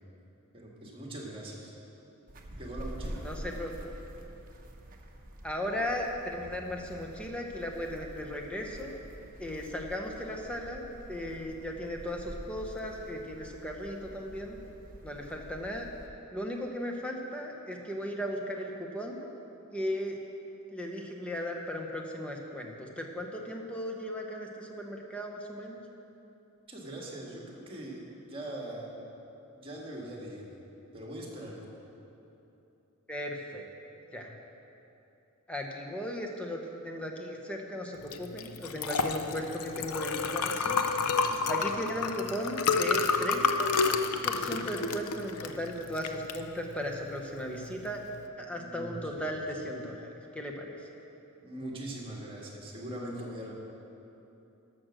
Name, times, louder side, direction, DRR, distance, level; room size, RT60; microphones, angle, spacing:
voice 1, 0.5-1.7 2.6-3.2 26.7-28.0 28.3-28.9 29.5-30.6 30.9-31.6 41.2-41.7 44.4-44.7 48.5-49.2 51.4-53.5, right 1 dB, 25° right, -2 dB, 1.7 m, -41 dB
sound 1, 2.3-16.1, right 1 dB, 40° right, 0.9 m, -46 dB
voice 2, 3.2-3.9 5.4-9.0 9.4-14.6 15.0-15.9 16.3-19.3 19.7-20.2 20.7-25.8 33.1-33.6 34.1-34.3 35.5-40.8 41.5-43.7 44.2-48.0 48.4-50.1 50.3-50.8, equal, 5° left, 1 dB, 1.0 m, -36 dB
Liquid, 38.0-48.2, left 4 dB, 85° left, 0.6 m, -30 dB
13.0 x 6.2 x 6.3 m, 2.9 s
head